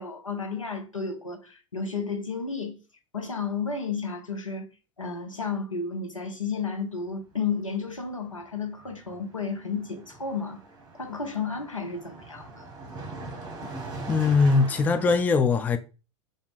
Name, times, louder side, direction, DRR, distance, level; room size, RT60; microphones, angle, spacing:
voice 1, 0.0-2.8 3.1-4.7 5.0-10.6 10.9-12.7 13.6-13.7, left 5 dB, 90° left, 0.7 m, -32 dB
Car passing by, 7.7-15.2, right 3 dB, 25° right, 1.1 m, -41 dB
voice 2, 14.1-15.8, left 4 dB, 10° left, 0.3 m, -21 dB
3.4 x 2.5 x 3.8 m
figure-of-eight pair, 90°, 16 cm